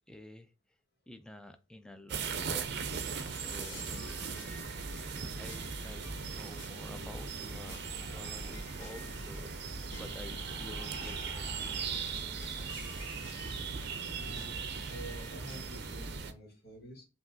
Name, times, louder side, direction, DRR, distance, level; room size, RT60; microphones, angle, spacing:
voice 1, 0.1-0.5 1.1-12.2, left 1 dB, 5° left, 0.4 m, -51 dB
sound 1, 2.1-16.3, right 6 dB, 60° right, 0.5 m, -39 dB
sound 2, 2.9-16.2, equal, 90° left, 1.5 m, -47 dB
sound 3, 7.6-8.8 10.0-12.2, left 3 dB, 35° left, 1.2 m, -53 dB
voice 2, 14.2-14.6 14.9-17.1, right 1 dB, 60° left, 1.6 m, -48 dB
5.6 x 2.8 x 2.6 m
head